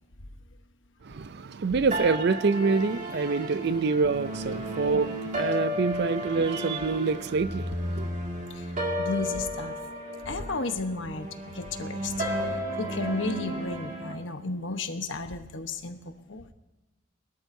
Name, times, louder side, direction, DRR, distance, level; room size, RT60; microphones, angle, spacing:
voice 1, 1.0-8.1, right 4 dB, 50° right, 0.4 m, -26 dB
sound 1, 1.9-14.1, equal, 35° right, 2.2 m, -33 dB
voice 2, 8.5-9.7 10.2-12.3 12.8-16.0 16.3-16.5, left 3 dB, 60° left, 1.1 m, -33 dB
21.0 x 12.5 x 2.7 m
head